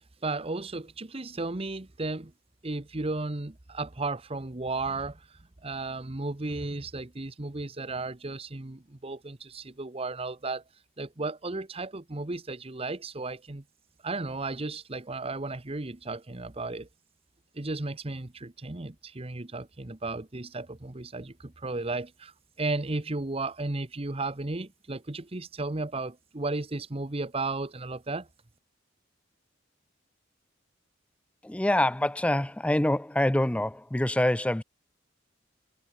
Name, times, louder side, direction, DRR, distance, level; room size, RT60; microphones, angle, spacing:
voice 1, 0.0-2.3 2.6-5.3 5.6-10.6 11.0-13.6 14.0-16.9 17.5-22.3 22.6-28.3, right 2 dB, 30° right, 1.0 m, -34 dB
voice 2, 31.4-34.6, left 1 dB, 5° left, 0.4 m, -25 dB
head